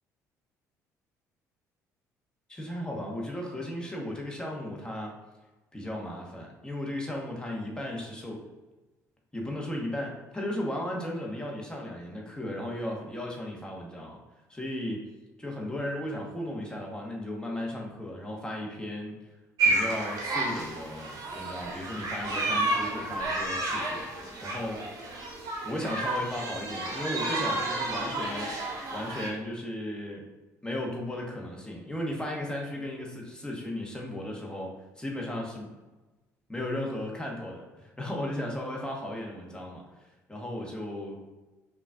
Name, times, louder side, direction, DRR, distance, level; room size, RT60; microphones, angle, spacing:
voice 1, 2.5-5.1 5.7-8.4 9.3-14.2 14.5-15.1 15.4-19.2 19.6-24.1 24.4-24.9 25.6-28.6 28.9-30.3 30.6-35.7 36.5-41.2, left 1 dB, 10° left, -1 dB, 1.1 m, -35 dB
sound 1, 19.6-29.3, right 2 dB, 45° right, 0.9 m, -31 dB
5.4 x 2.4 x 2.4 m, 1.1 s
figure-of-eight pair, 50°, 9 cm